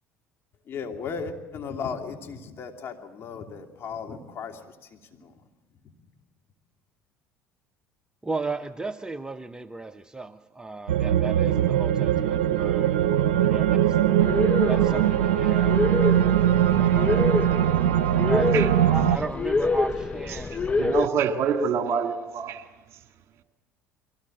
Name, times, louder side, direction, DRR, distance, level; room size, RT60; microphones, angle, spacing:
voice 1, 0.7-5.4 5.8-5.9, left 5 dB, 45° left, 2.9 m, -36 dB
voice 2, 8.2-13.0 13.4-13.7 14.7-15.8 16.7-17.4 18.2-21.0 21.4-21.5, right 3 dB, 15° right, 0.8 m, -35 dB
sound 1, 10.9-19.2, right 11 dB, 85° right, 0.7 m, -21 dB
sound 2, 14.2-21.1, left 3 dB, 25° left, 0.7 m, -27 dB
voice 3, 20.8-22.6, right 6 dB, 55° right, 2.0 m, -26 dB
23.0 x 17.5 x 7.9 m
hypercardioid pair, 70°, 6 cm